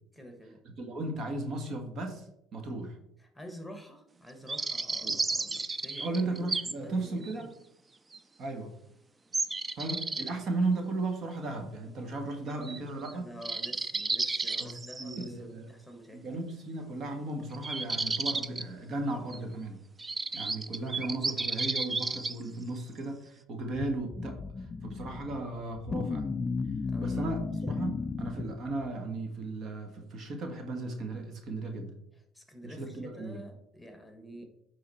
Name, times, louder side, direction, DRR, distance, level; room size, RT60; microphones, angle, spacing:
voice 1, 0.1-0.6 3.2-6.3 6.7-7.5 13.1-16.4 26.8-27.4 32.3-34.4, equal, ahead, 4 dB, 1.7 m, -48 dB
voice 2, 0.6-3.0 5.0-5.2 6.0-7.5 8.4-8.8 9.8-13.4 14.6-15.7 16.1-19.8 20.3-26.4 27.0-31.9 32.6-33.4, right 2 dB, 55° right, 4 dB, 1.6 m, -36 dB
sound 1, 4.5-6.7 7.2-7.3 8.1-8.2 9.3-10.3 12.6-12.8 13.0-13.1 13.4-15.3 17.5-18.6 19.3-19.4 20.0-22.4, right 3 dB, 25° right, 0.5 m, -32 dB
sound 2, 23.7-28.9, left 4 dB, 30° left, 0.4 m, -34 dB
9.3 x 3.9 x 4.4 m, 0.76 s
supercardioid pair, 80°, 0 cm